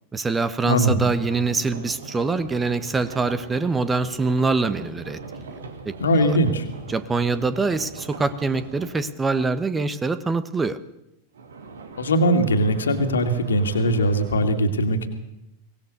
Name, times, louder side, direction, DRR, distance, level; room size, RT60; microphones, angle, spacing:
voice 1, 0.1-5.2 5.8-6.4 6.9-10.8, right 3 dB, 15° right, 14 dB, 1.1 m, -24 dB
voice 2, 0.6-1.0 6.0-6.6 12.0-15.1, equal, 70° left, 7 dB, 2.4 m, -20 dB
sound 1, 0.9-9.1 11.3-14.4, right 4 dB, 65° right, 2.6 m, -40 dB
23.5 x 18.5 x 6.8 m, 0.85 s
figure-of-eight pair, 90°, 0 cm